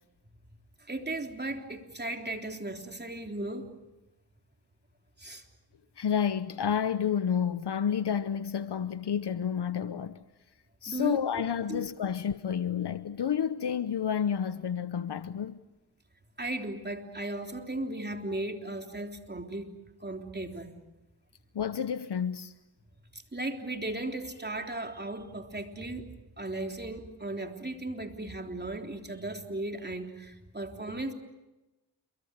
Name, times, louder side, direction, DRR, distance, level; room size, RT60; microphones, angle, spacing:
voice 1, 0.8-3.7 5.2-5.4 10.9-11.4 11.7-11.9 16.4-20.7 23.1-31.1, right 2 dB, 25° right, 3.5 m, -36 dB
voice 2, 6.0-10.2 10.8-15.6 21.5-22.5, left 8 dB, 75° left, 0.9 m, -30 dB
28.0 x 23.5 x 8.2 m
cardioid pair, 50°, 41 cm